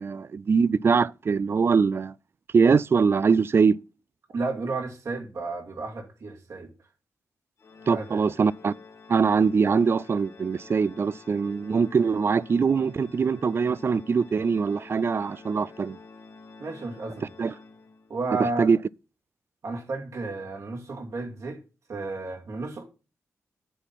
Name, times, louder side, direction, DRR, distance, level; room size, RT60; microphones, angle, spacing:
voice 1, 0.0-2.1 2.5-3.8 7.9-8.7 9.1-16.0 17.4-17.5 18.6-18.8, right 5 dB, 45° right, 0.4 m, -22 dB
voice 2, 4.3-6.7 7.9-8.3 16.6-17.3 18.1-18.7 19.6-21.6 21.9-22.8, right 3 dB, 65° right, 2.3 m, -32 dB
Organ, 7.6-18.3, left 4 dB, 55° left, 1.3 m, -49 dB
10.0 x 4.2 x 5.6 m
cardioid pair, 55°, 6 cm